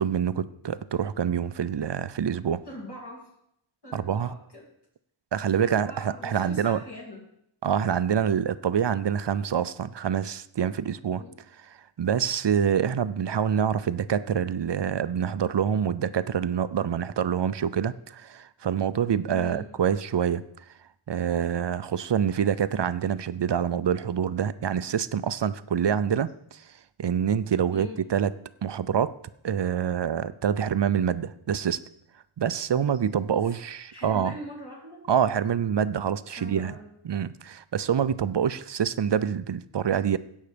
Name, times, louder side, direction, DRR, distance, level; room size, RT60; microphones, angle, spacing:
voice 1, 0.0-2.6 3.9-4.3 5.3-6.8 7.6-11.2 12.0-20.4 21.1-26.6 27.0-28.3 28.6-29.2 29.4-31.8 32.4-34.4 35.1-36.7 37.0-40.2, right 8 dB, 55° right, 15 dB, 0.6 m, -26 dB
voice 2, 2.7-3.3 3.8-4.7 5.6-7.2 11.2-11.4 19.3-19.7 27.7-28.0 33.3-33.5 33.9-35.0 36.3-36.9, left 1 dB, 50° left, -3 dB, 3.0 m, -42 dB
16.5 x 5.6 x 5.1 m, 0.75 s
wide cardioid pair, 50°, 50 cm